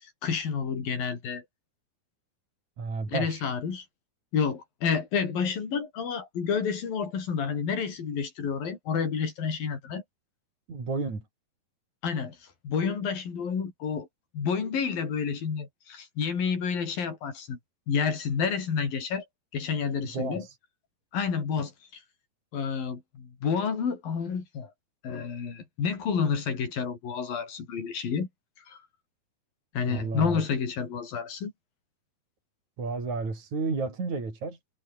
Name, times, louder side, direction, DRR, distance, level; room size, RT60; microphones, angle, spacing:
voice 1, 0.2-1.4 3.1-3.9 4.3-10.0 12.0-12.4 12.6-14.1 14.3-17.6 17.9-19.2 19.5-20.5 21.1-21.7 22.5-24.7 25.0-28.3 28.7-28.8 29.7-31.5, left 6 dB, 60° left, 6.1 m, -29 dB
voice 2, 2.8-3.4 10.7-11.2 20.1-20.5 29.8-30.4 32.8-34.6, right 4 dB, 45° right, 7.7 m, -32 dB
omnidirectional pair, 4.7 m